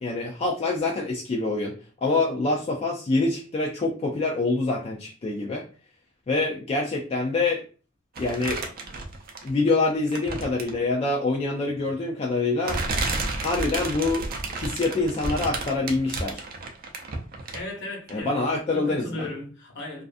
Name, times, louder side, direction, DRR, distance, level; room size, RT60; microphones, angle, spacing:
voice 1, 0.0-1.7 2.0-5.6 6.3-7.6 8.2-8.6 9.4-12.8 13.4-14.3 14.5-16.4 18.1-19.3, left 3 dB, 30° left, 0.3 m, -25 dB
sound 1, 8.2-9.7 10.1-10.8 11.8-12.0 12.6-17.8 18.1-18.2, right 2 dB, 45° right, 0.4 m, -31 dB
voice 2, 17.5-20.0, left 2 dB, 60° left, 0.8 m, -36 dB
2.4 x 2.4 x 2.4 m
head